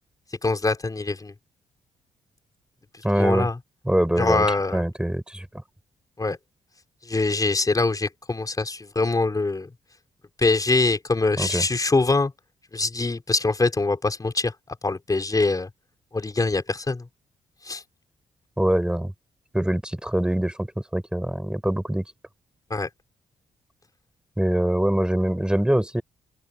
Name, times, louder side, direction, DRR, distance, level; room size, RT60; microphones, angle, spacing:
voice 1, 0.4-1.3 3.2-3.6 4.2-4.8 6.2-6.4 7.1-9.7 10.4-12.3 12.7-14.5 14.8-15.7 16.1-17.1 17.6-17.8 22.7-22.9, left 3 dB, 25° left, 5.1 m, -23 dB
voice 2, 3.0-3.5 3.8-4.5 4.7-5.5 11.4-11.7 18.6-19.1 19.5-22.1 24.4-26.0, right 1 dB, 5° right, 4.5 m, -23 dB
open air
cardioid pair, 70°, 14 cm